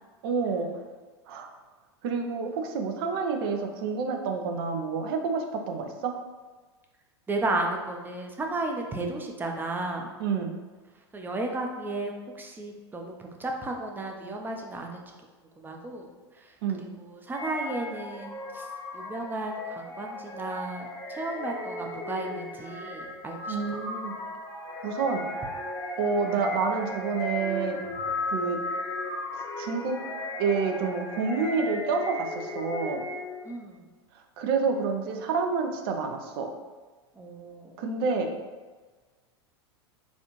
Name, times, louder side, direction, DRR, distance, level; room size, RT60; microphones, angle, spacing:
voice 1, 0.2-0.7 1.3-1.5 2.0-6.1 10.2-10.5 16.6-16.8 23.5-24.1 24.8-25.2 26.0-27.8 28.3-28.6 29.3-30.0 30.4-33.0 34.4-36.5 37.8-38.3, right 5 dB, 60° right, 4 dB, 0.5 m, -28 dB
voice 2, 7.3-10.1 11.1-15.1 15.4-16.1 16.3-18.7 18.9-23.6 33.4-33.9 37.2-37.8, right 2 dB, 15° right, 2 dB, 0.5 m, -34 dB
sound 1, 17.3-33.5, left 2 dB, 20° left, 0.8 m, -36 dB
4.0 x 2.5 x 3.0 m, 1.3 s
hypercardioid pair, 90°, 14 cm